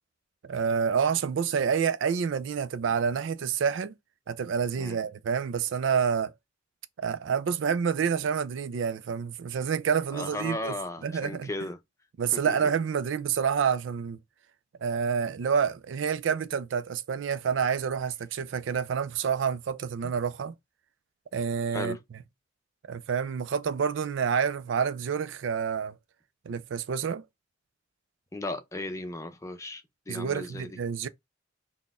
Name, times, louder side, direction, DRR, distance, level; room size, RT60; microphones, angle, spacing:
voice 1, 0.4-3.9 4.3-6.3 7.0-10.8 11.0-11.5 12.2-14.2 14.8-20.5 21.3-22.0 22.9-26.0 26.5-27.2 30.1-31.1, right 6 dB, 70° right, 0.4 m, -28 dB
voice 2, 10.1-11.8 12.3-12.7 21.7-22.0 28.3-30.8, left 2 dB, 15° left, 0.6 m, -36 dB
4.1 x 2.1 x 3.5 m
head